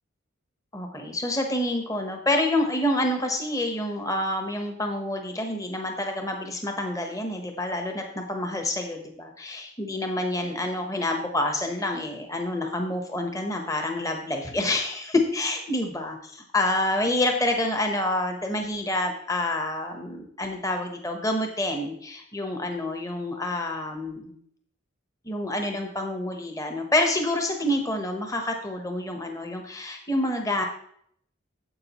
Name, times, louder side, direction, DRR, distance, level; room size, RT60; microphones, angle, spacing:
voice 1, 0.7-24.4 25.2-30.6, left 1 dB, 15° left, 4 dB, 0.9 m, -28 dB
9.6 x 7.6 x 3.0 m, 0.66 s
head